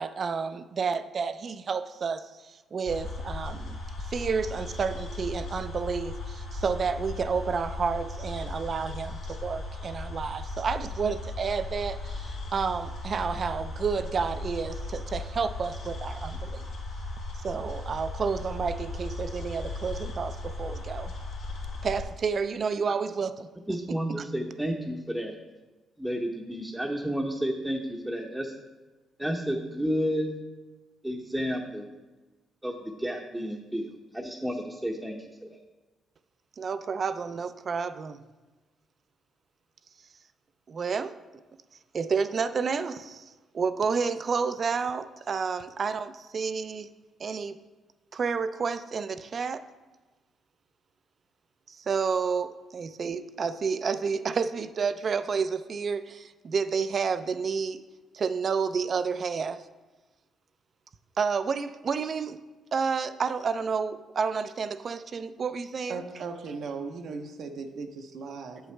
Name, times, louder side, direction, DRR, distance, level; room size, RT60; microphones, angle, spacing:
voice 1, 0.0-16.7 17.4-21.1 21.8-24.2 36.6-38.2 40.7-41.2 41.9-43.2 43.5-46.9 47.2-47.6 48.1-49.6 51.7-57.8 58.1-59.6 61.2-62.4 62.7-66.0, right 5 dB, 45° right, 0.4 m, -30 dB
sound 1, 2.8-22.0, left 2 dB, 85° left, 2.2 m, -37 dB
voice 2, 23.7-25.4 26.0-28.5 29.2-30.3 31.0-31.8 32.6-33.9 34.1-35.5, equal, 5° right, 0.7 m, -31 dB
voice 3, 65.9-68.7, right 4 dB, 70° right, 0.8 m, -37 dB
8.3 x 7.9 x 3.3 m
cardioid pair, 90°, 0 cm